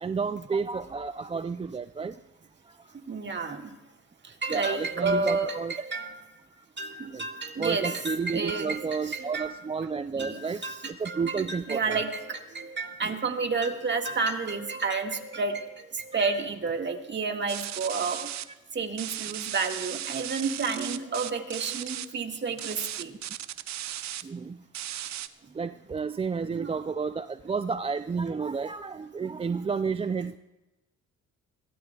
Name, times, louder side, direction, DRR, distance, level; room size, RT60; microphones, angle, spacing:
voice 1, 0.0-2.1 4.5-5.7 7.1-7.2 7.6-10.6 11.0-12.0 13.0-13.1 24.2-24.6 25.5-30.4, right 5 dB, 20° right, 11 dB, 0.4 m, -31 dB
voice 2, 3.1-3.7 4.4-6.1 6.8-9.6 10.2-18.3 18.7-23.1 26.5-26.7, right 4 dB, 35° right, 4 dB, 1.8 m, -30 dB
sound 1, 17.5-18.4 19.0-22.0 22.6-24.2 24.7-25.3, right 12 dB, 65° right, 0.7 m, -36 dB
23.0 x 16.5 x 2.4 m, 1.0 s
cardioid pair, 90°, 30 cm